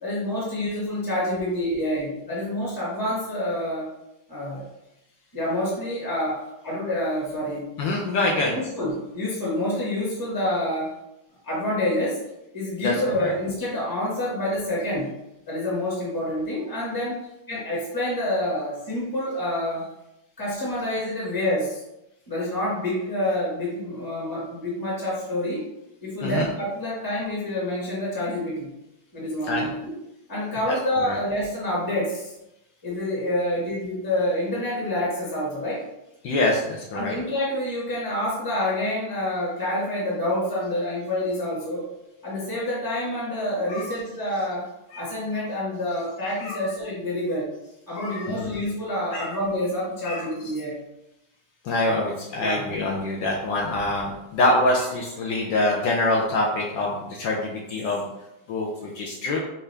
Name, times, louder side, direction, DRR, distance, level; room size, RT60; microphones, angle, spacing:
voice 1, 0.0-3.9 4.3-4.7 5.3-7.7 8.5-10.9 11.4-12.2 12.5-15.1 15.5-19.9 20.4-21.8 22.3-25.6 26.0-28.7 29.1-29.9 30.3-32.3 32.8-35.8 36.9-41.9 42.2-44.6 44.9-47.5 47.9-50.8 52.4-52.7, left 1 dB, 15° left, -6 dB, 0.9 m, -27 dB
voice 2, 7.8-8.5 12.8-13.3 26.2-26.5 29.4-29.7 30.7-31.2 36.2-37.1 43.7-43.8 44.9-45.1 46.4-46.8 47.9-48.5 49.1-49.4 50.1-50.5 51.6-58.1 58.5-58.7 58.9-59.4, left 2 dB, 70° left, -1 dB, 1.2 m, -25 dB
5.4 x 2.5 x 3.3 m, 0.90 s
omnidirectional pair, 2.3 m